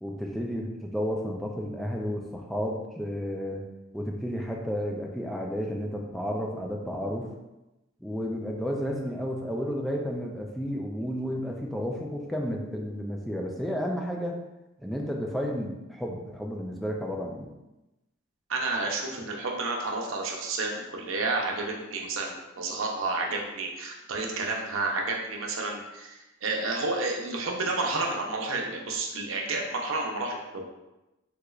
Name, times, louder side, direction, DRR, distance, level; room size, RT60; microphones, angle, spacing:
voice 1, 0.0-3.7 3.9-7.3 8.0-14.4 14.8-17.5, equal, ahead, -1 dB, 0.3 m, -32 dB
voice 2, 18.5-30.7, right 3 dB, 85° right, 0 dB, 0.6 m, -30 dB
3.5 x 3.0 x 2.3 m, 0.99 s
head